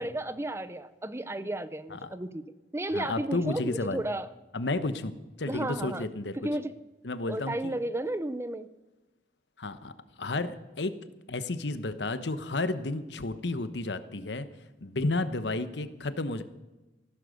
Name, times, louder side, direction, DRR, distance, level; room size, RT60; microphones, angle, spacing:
voice 1, 0.0-2.4 2.7-4.3 5.5-6.1 6.4-6.8 7.3-8.7 10.4-10.5, right 1 dB, 15° right, 14 dB, 0.6 m, -33 dB
voice 2, 2.9-4.0 4.5-5.1 5.4-6.4 7.0-7.7 9.6-9.9 10.2-10.9 11.3-14.5 14.8-16.4, left 2 dB, 80° left, 12 dB, 1.1 m, -32 dB
15.0 x 12.0 x 6.6 m, 1.1 s
head